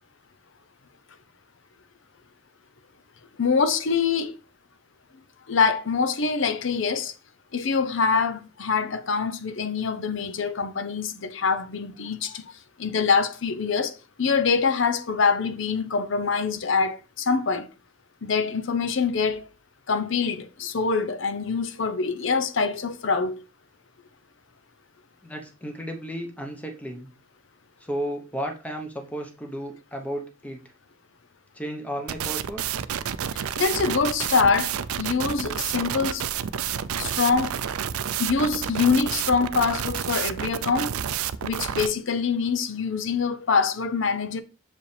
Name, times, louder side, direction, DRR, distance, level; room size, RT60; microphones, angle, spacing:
voice 1, 3.4-4.4 5.5-7.1 7.5-12.5 12.8-17.7 18.2-19.4 19.9-23.3 33.3-34.7 35.0-36.2 37.0-37.5 38.2-41.0 41.4-44.4, left 5 dB, 60° left, 0.7 m, -24 dB
voice 2, 25.2-27.1 27.8-30.6 31.5-32.8, equal, 5° left, 0.9 m, -34 dB
sound 1, 32.1-41.9, right 9 dB, 90° right, 0.5 m, -29 dB
7.0 x 4.9 x 3.3 m
head